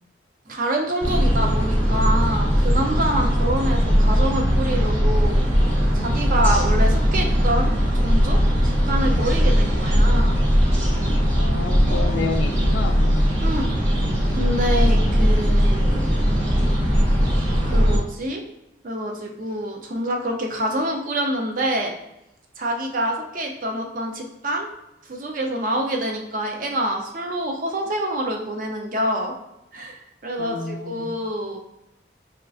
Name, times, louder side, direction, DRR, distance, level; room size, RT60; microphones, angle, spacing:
voice 1, 0.5-5.4 5.9-8.4 8.6-10.4 13.4-13.7 14.4-16.1 17.7-18.4 18.8-21.9 22.6-24.7 25.0-29.3 29.7-31.6, right 1 dB, 45° right, 1 dB, 0.5 m, -26 dB
sound 1, 1.0-18.0, equal, 90° right, 0.9 m, -19 dB
voice 2, 11.4-13.3 30.4-31.1, left 4 dB, 70° left, 7 dB, 0.3 m, -30 dB
4.3 x 2.4 x 2.5 m, 0.88 s
head